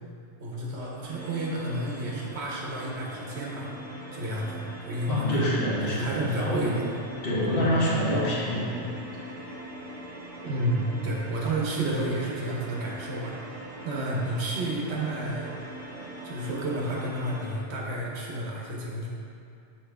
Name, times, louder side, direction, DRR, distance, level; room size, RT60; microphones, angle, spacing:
voice 1, 0.4-3.7 4.1-5.4 5.9-6.8 10.4-13.4 13.8-15.5 16.2-19.1, right 1 dB, 90° right, -3 dB, 1.1 m, -31 dB
sound 1, 1.0-17.5, right 1 dB, 55° right, 1.1 m, -42 dB
voice 2, 5.1-6.7 7.2-8.7, equal, 60° left, -5 dB, 1.3 m, -26 dB
5.5 x 4.8 x 3.5 m, 2.5 s
omnidirectional pair, 1.1 m